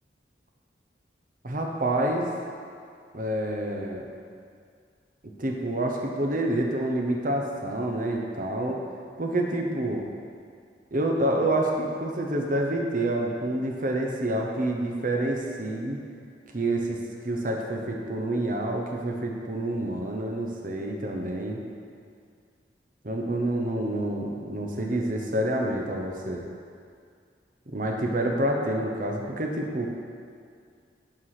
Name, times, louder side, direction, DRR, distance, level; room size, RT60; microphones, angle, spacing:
voice 1, 1.4-2.3 3.1-4.1 5.4-8.8 9.2-10.0 10.9-16.0 16.5-17.0 17.2-21.6 23.0-26.5 27.7-29.9, right 1 dB, 50° right, 1 dB, 0.9 m, -28 dB
11.5 x 4.7 x 4.9 m, 2.2 s
head